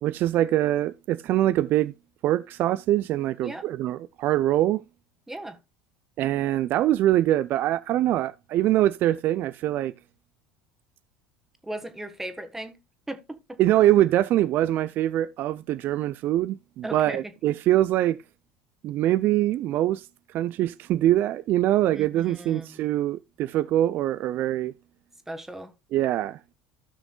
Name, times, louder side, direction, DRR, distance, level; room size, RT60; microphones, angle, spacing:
voice 1, 0.0-1.9 2.2-4.8 6.2-9.9 13.6-18.2 18.8-20.1 20.3-24.7 25.9-26.5, right 13 dB, 55° right, 0.5 m, -23 dB
voice 2, 5.3-5.6 11.6-12.8 13.1-13.6 16.8-17.3 21.9-22.8 25.3-25.7, right 1 dB, 10° right, 1.5 m, -37 dB
16.5 x 6.0 x 2.4 m
hypercardioid pair, 70°, 4 cm